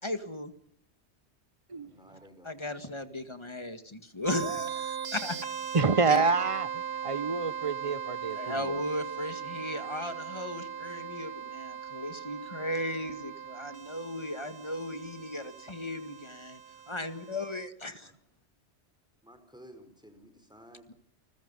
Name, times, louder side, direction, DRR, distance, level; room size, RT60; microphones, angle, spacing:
voice 1, 0.0-0.5 2.4-5.4 6.1-6.2 8.4-16.6 16.9-18.1, left 1 dB, 25° left, 1.9 m, -36 dB
voice 2, 1.8-2.8 18.0-18.1 19.2-20.9, equal, 5° right, 4.5 m, -54 dB
sound 1, 4.2-17.7, right 8 dB, 65° right, 1.6 m, -39 dB
voice 3, 5.7-8.8, right 4 dB, 30° right, 1.1 m, -28 dB
29.0 x 21.0 x 5.5 m
omnidirectional pair, 1.1 m